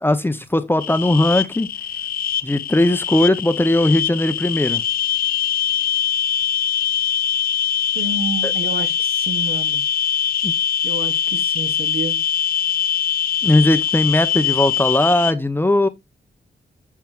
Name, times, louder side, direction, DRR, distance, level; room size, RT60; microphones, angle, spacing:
voice 1, 0.0-1.7 2.4-4.8 8.4-8.5 10.4-10.5 13.4-15.9, left 1 dB, 10° left, 0.7 m, -18 dB
sound 1, 0.8-15.3, left 8 dB, 55° left, 0.4 m, -22 dB
voice 2, 7.9-9.8 10.8-12.2, right 3 dB, 55° right, 1.1 m, -29 dB
10.5 x 5.7 x 2.4 m
cardioid pair, 80°, 18 cm